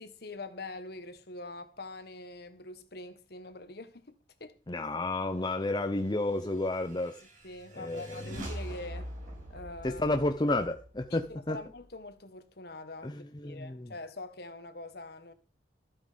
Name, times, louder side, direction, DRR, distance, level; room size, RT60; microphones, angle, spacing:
voice 1, 0.0-4.6 7.4-9.1 9.5-10.0 11.1-15.3, left 2 dB, 60° left, 1.5 m, -44 dB
voice 2, 4.7-7.2 7.8-8.2 9.8-11.6 13.0-13.9, left 2 dB, 25° left, 0.7 m, -31 dB
sound 1, 6.3-11.9, equal, 45° right, 5.4 m, -44 dB
13.0 x 8.8 x 5.1 m
head